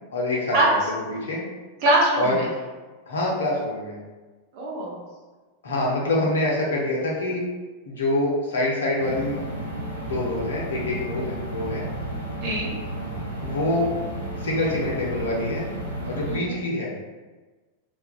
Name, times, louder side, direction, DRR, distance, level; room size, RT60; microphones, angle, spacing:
voice 1, 0.1-1.4 2.2-2.4 3.1-4.0 5.6-7.4 7.9-9.4 10.0-11.8 13.4-13.9 14.4-15.7 16.1-17.0, left 1 dB, 65° left, -3 dB, 0.6 m, -26 dB
voice 2, 1.8-2.4 4.5-5.0 12.4-12.7 16.2-16.5, right 1 dB, 45° right, -4 dB, 0.7 m, -22 dB
sound 1, 9.0-16.4, right 1 dB, 85° right, 0.4 m, -32 dB
2.3 x 2.2 x 2.4 m, 1.3 s
figure-of-eight pair, 90°, 0 cm